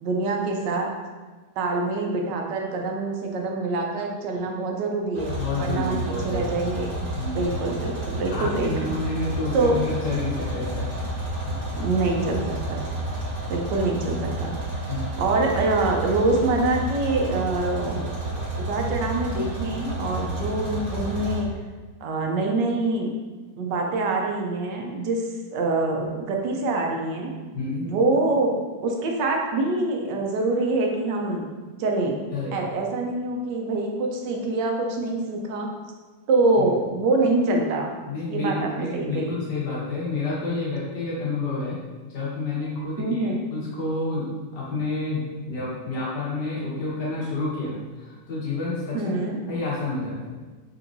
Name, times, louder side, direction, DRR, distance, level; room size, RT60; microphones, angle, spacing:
voice 1, 0.0-0.9 1.6-5.3 5.6-7.0 7.3-8.7 9.5-9.8 11.8-12.4 12.7-12.8 13.5-14.5 15.2-18.4 18.7-21.5 22.0-23.1 23.6-25.2 25.5-27.3 27.8-28.6 28.8-31.5 31.8-32.1 32.5-35.7 36.3-39.3 43.0-43.4 48.9-49.4, right 2 dB, 80° right, 1 dB, 1.3 m, -25 dB
sound 1, 5.1-21.4, right 1 dB, 50° right, 1.4 m, -31 dB
voice 2, 5.3-6.5 7.2-7.4 8.3-10.9 11.4-11.6 14.9-15.1 27.5-27.9 32.3-32.6 36.6-36.7 38.1-41.8 42.1-49.1 49.5-50.4, left 3 dB, 70° left, -6 dB, 1.8 m, -29 dB
4.4 x 3.8 x 2.6 m, 1.3 s
omnidirectional pair, 1.9 m